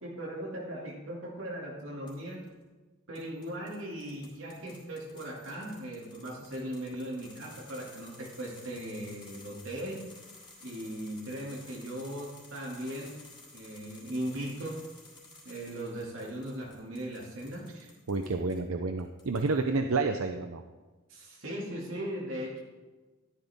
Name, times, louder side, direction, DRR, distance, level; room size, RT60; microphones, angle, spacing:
voice 1, 0.0-2.5 3.1-10.1 10.6-13.2 13.5-14.9 15.4-17.7 21.1-22.6, right 1 dB, 65° right, -3 dB, 2.5 m, -38 dB
sound 1, 2.1-2.5 3.2-18.6 19.0-19.8, left 2 dB, 20° left, 4.3 m, -54 dB
voice 2, 18.1-20.6, right 3 dB, 85° right, 6 dB, 0.7 m, -29 dB
14.0 x 12.0 x 3.6 m, 1.3 s
head